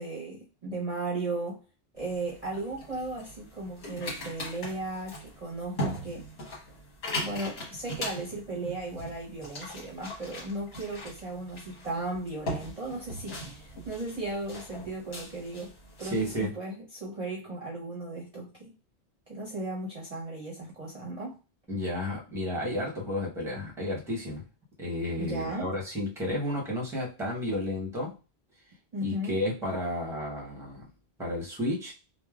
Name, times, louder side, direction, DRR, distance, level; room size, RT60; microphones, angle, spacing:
voice 1, 0.0-1.6 1.9-6.3 7.2-15.7 16.0-18.7 19.3-21.4 25.2-25.7 28.9-29.4, right 2 dB, 40° right, -5 dB, 0.7 m, -36 dB
sound 1, 2.0-16.4, equal, 75° left, 1.4 m, -40 dB
voice 2, 16.0-16.5 21.7-24.5 24.8-28.2 29.0-30.8 31.2-31.9, left 1 dB, 5° right, -3 dB, 0.8 m, -32 dB
3.2 x 2.1 x 2.3 m, 0.31 s
omnidirectional pair, 1.1 m